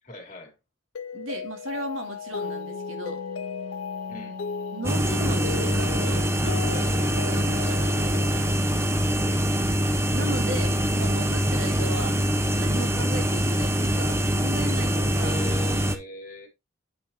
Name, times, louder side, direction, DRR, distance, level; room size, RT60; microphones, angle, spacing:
voice 1, 0.0-0.5 4.1-4.4 9.1-9.6 15.2-16.5, left 2 dB, 40° left, 2.4 m, -40 dB
Mallet percussion, 0.9-9.1, left 6 dB, 75° left, 0.5 m, -36 dB
voice 2, 1.1-3.2 4.7-6.9 7.2-8.2 10.1-12.2 12.5-15.4, right 1 dB, 85° right, 2.3 m, -36 dB
Wind instrument woodwind instrument, 2.1-6.3, left 2 dB, 60° right, 2.4 m, -42 dB
sound 1, 4.8-16.0, equal, 15° right, 0.7 m, -24 dB
8.6 x 5.6 x 2.9 m
head